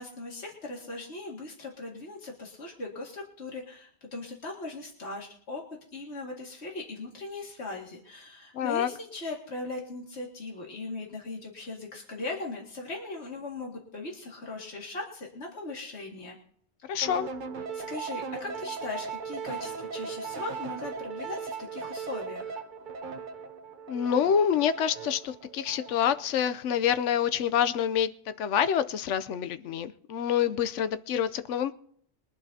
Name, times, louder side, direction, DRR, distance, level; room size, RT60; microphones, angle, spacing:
voice 1, 0.0-5.6 5.9-16.4 17.7-22.6, left 3 dB, 65° left, -2 dB, 2.4 m, -39 dB
voice 2, 8.5-8.9 16.9-17.3 23.9-28.1 28.4-31.7, left 8 dB, 85° left, 12 dB, 1.0 m, -27 dB
sound 1, 17.0-26.4, right 5 dB, 50° right, 0.9 m, -38 dB
22.5 x 11.5 x 2.8 m, 0.63 s
omnidirectional pair, 1.2 m